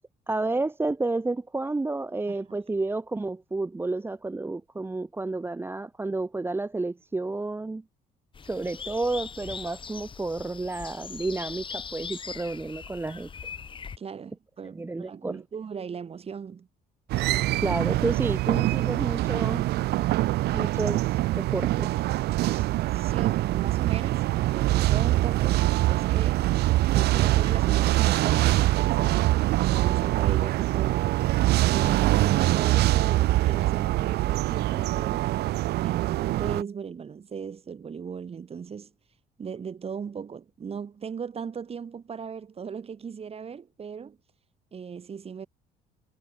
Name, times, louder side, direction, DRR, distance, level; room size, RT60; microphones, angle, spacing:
voice 1, 0.3-7.8 8.4-13.3 14.6-15.4 17.6-19.7 20.5-21.9 22.5-22.7, right 2 dB, 15° right, 0.8 m, -31 dB
voice 2, 2.3-2.6 14.0-16.7 22.9-26.5 26.9-29.2 29.7-35.3 35.8-38.9 39.4-44.2 44.7-45.5, right 6 dB, 35° right, 3.5 m, -38 dB
sound 1, 8.3-14.0, left 6 dB, 30° left, 1.2 m, -40 dB
sound 2, 17.1-36.6, right 17 dB, 75° right, 0.7 m, -24 dB
cardioid pair, 110°, 17 cm